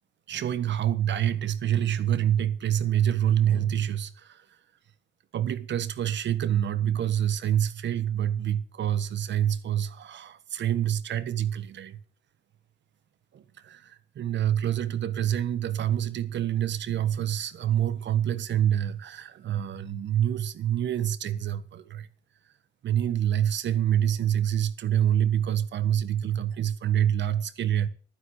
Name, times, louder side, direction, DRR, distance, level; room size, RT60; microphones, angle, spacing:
voice 1, 0.3-4.4 5.3-12.0 13.3-22.1 22.8-27.9, right 10 dB, 65° right, 1.5 m, -26 dB
12.0 x 10.0 x 8.1 m
cardioid pair, 90°, 20 cm